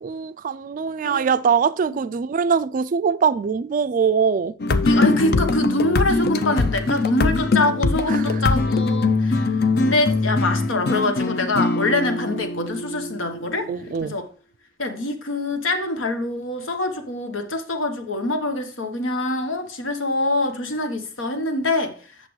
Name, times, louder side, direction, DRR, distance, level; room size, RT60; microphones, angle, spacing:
voice 1, 0.0-4.5 8.1-8.4 13.7-14.2, right 6 dB, 45° right, 0.3 m, -22 dB
sound 1, 4.6-14.0, left 3 dB, 55° left, 0.6 m, -22 dB
voice 2, 4.8-13.7 14.0-14.2 14.8-22.3, left 2 dB, 80° left, 1.2 m, -24 dB
8.3 x 6.7 x 3.1 m
head